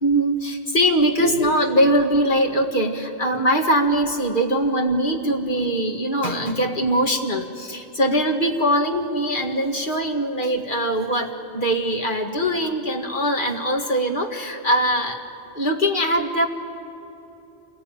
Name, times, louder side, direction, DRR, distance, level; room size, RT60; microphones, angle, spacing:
voice 1, 0.0-15.2 15.6-16.5, equal, 45° left, 3 dB, 2.1 m, -22 dB
27.5 x 19.5 x 9.2 m, 3.0 s
omnidirectional pair, 1.2 m